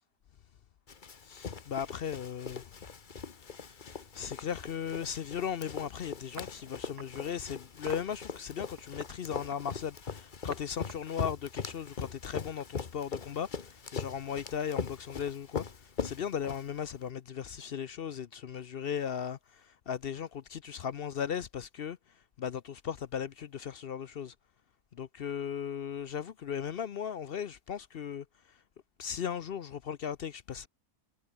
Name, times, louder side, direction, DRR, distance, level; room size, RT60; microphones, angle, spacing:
Run, 0.9-17.0, left 5 dB, 35° left, 1.2 m, -41 dB
voice 1, 1.2-2.8 3.5-24.3 25.0-28.6 29.0-30.7, left 8 dB, 60° left, 0.6 m, -37 dB
sound 1, 6.4-7.3 7.9-8.1 8.8-9.9 10.5-10.6 10.9-12.3, right 5 dB, 80° right, 2.8 m, -49 dB
omnidirectional pair, 1.6 m